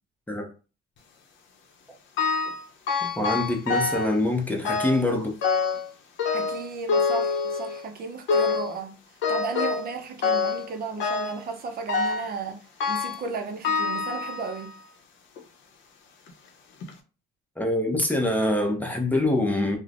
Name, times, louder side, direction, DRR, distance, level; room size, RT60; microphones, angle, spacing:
sound 1, 2.2-2.6 2.9-4.2 4.6-5.1 5.4-5.9 6.2-7.9 8.3-8.8 9.2-9.9 10.2-10.7 11.0-11.4 11.9-12.3 12.8-13.3 13.6-14.7 15.4-15.5 16.3-16.4 16.8-16.9, left 5 dB, 65° left, 0.7 m, -26 dB
voice 1, 3.0-5.4 17.6-19.8, left 1 dB, 10° left, 0.7 m, -25 dB
voice 2, 6.3-9.0 9.3-12.6 12.9-14.7, right 4 dB, 45° right, 0.5 m, -34 dB
3.1 x 2.1 x 2.5 m
cardioid pair, 90°, 21 cm